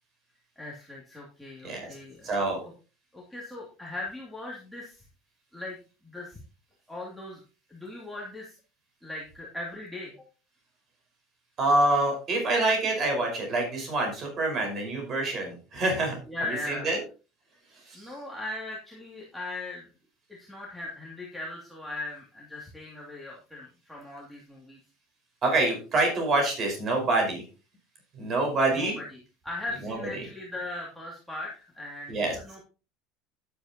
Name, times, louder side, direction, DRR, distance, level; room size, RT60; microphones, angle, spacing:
voice 1, 0.6-2.3 3.1-5.0 5.5-5.8 6.0-6.4 6.9-7.4 7.7-8.5 9.0-10.1 16.3-16.9 17.9-19.9 20.4-24.8 28.7-29.0 29.4-32.6, left 2 dB, ahead, -5 dB, 2.7 m, -39 dB
voice 2, 1.6-1.9 2.2-2.6 11.6-16.2 16.5-17.0 17.7-18.1 25.4-27.4 28.1-29.0 29.8-30.2 32.1-32.3, right 2 dB, 30° right, 2 dB, 5.1 m, -26 dB
11.5 x 10.5 x 3.0 m, 0.34 s
cardioid pair, 155°, 0 cm